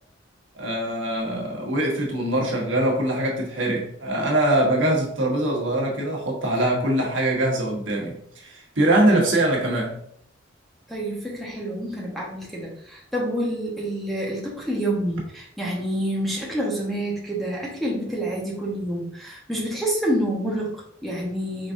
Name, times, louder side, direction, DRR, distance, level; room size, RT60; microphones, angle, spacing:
voice 1, 0.5-10.0, right 1 dB, 75° right, -1 dB, 1.2 m, -23 dB
voice 2, 10.9-21.7, right 1 dB, ahead, -4 dB, 1.0 m, -28 dB
5.1 x 3.5 x 2.6 m, 0.67 s
head